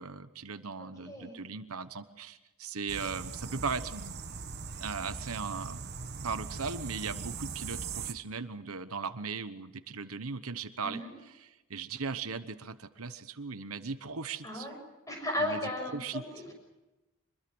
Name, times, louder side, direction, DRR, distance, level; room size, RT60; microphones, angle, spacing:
voice 1, 0.0-4.2 4.8-5.8 6.2-11.0 11.4-14.7 15.4-15.6 15.9-16.2, right 5 dB, 80° right, 11 dB, 1.1 m, -38 dB
voice 2, 0.8-1.4 10.8-11.1 14.4-14.8 15.1-16.5, left 1 dB, 15° left, 3 dB, 6.6 m, -35 dB
sound 1, 2.9-8.1, right 5 dB, 50° right, 1.1 m, -40 dB
25.0 x 22.0 x 6.3 m, 1.0 s
head